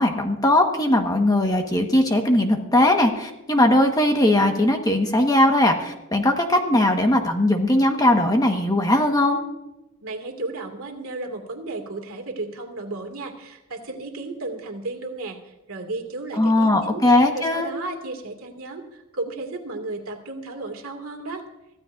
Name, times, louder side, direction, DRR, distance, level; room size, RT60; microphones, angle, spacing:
voice 1, 0.0-9.4 16.3-17.7, left 1 dB, 15° left, 3 dB, 1.4 m, -19 dB
voice 2, 10.0-17.0 17.3-21.4, right 2 dB, 65° right, 3 dB, 2.4 m, -34 dB
24.5 x 15.0 x 2.6 m, 0.94 s
head